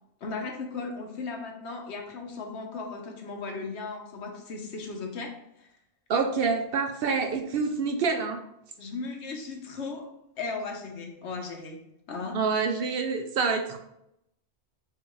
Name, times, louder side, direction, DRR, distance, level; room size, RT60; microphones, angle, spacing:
voice 1, 0.2-5.7 8.8-10.1 10.4-11.8 12.1-12.4, left 4 dB, 70° left, 3 dB, 1.1 m, -36 dB
voice 2, 6.1-8.4 12.3-13.8, right 5 dB, 65° right, 5 dB, 0.7 m, -27 dB
7.0 x 2.5 x 3.0 m, 0.79 s
omnidirectional pair, 1.2 m